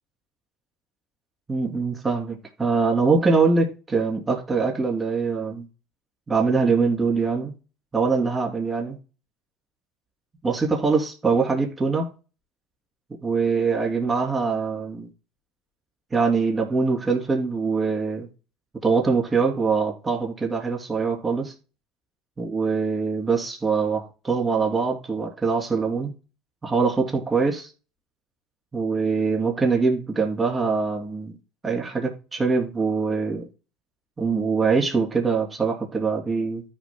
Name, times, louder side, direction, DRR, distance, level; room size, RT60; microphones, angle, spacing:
voice 1, 1.5-5.7 6.3-7.5 7.9-9.0 10.4-12.1 13.2-15.1 16.1-18.3 18.8-21.5 22.4-26.1 26.6-27.7 28.7-31.3 31.6-33.4 34.2-36.6, right 4 dB, 25° right, 3.2 m, -23 dB
14.5 x 5.4 x 2.3 m
hypercardioid pair, 80°, 0 cm